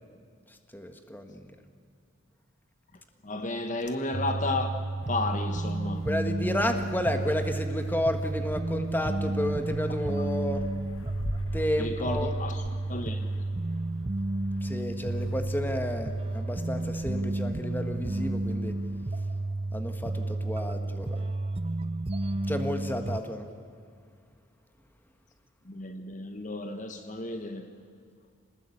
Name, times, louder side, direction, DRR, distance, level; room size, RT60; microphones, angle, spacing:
voice 1, 0.7-1.4 6.0-10.6 11.5-12.4 14.6-18.7 19.7-21.2 22.5-23.4, left 1 dB, 10° left, 1.5 m, -31 dB
voice 2, 3.2-4.8 5.1-6.1 11.8-12.6 12.9-13.3 25.7-27.7, left 2 dB, 40° left, 1.2 m, -32 dB
sound 1, 4.1-23.2, right 2 dB, 30° right, 0.5 m, -31 dB
Wind, 5.0-19.9, left 1 dB, 85° left, 1.4 m, -46 dB
27.0 x 19.5 x 8.6 m
head